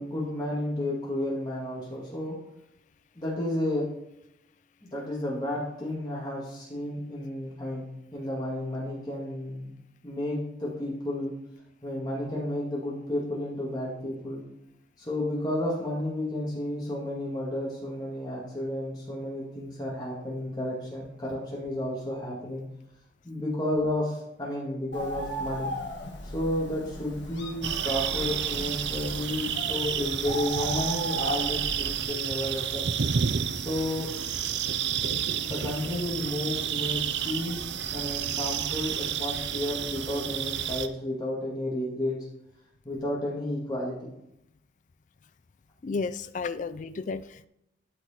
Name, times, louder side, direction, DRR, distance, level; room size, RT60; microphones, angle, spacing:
voice 1, 0.0-2.3 3.2-3.8 4.9-7.8 8.1-9.7 10.0-11.3 11.8-14.4 15.0-22.6 23.2-25.7 26.2-32.9 33.6-34.1 35.4-42.2 42.8-44.1, left 1 dB, 20° left, -5 dB, 2.2 m, -32 dB
Bird, 24.9-32.0, equal, 60° left, 1.7 m, -37 dB
sound 1, 27.6-40.9, right 8 dB, 60° right, 0.5 m, -30 dB
voice 2, 45.8-47.5, left 4 dB, 40° left, 12 dB, 0.3 m, -32 dB
12.0 x 4.8 x 4.3 m, 0.82 s
head